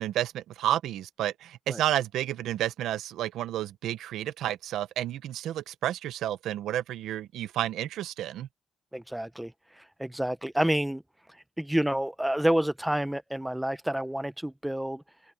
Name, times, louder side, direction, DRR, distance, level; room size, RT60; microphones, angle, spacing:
voice 1, 0.0-8.5, right 12 dB, 80° right, 0.8 m, -31 dB
voice 2, 8.9-9.5 10.0-11.0 11.6-15.0, right 1 dB, 5° right, 1.0 m, -28 dB
open air
cardioid pair, 90°, 0 cm